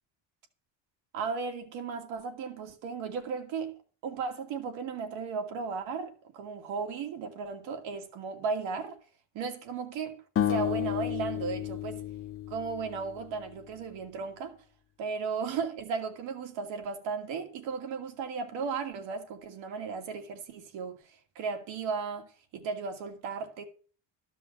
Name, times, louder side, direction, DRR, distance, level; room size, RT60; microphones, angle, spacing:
voice 1, 1.1-3.7 4.0-9.0 9.3-10.2 10.5-12.0 12.5-14.6 15.0-21.0 21.4-23.6, right 5 dB, 85° right, 2.5 m, -35 dB
sound 1, 10.4-13.5, left 11 dB, 30° left, 0.5 m, -32 dB
13.5 x 5.6 x 7.8 m
cardioid pair, 100°, 44 cm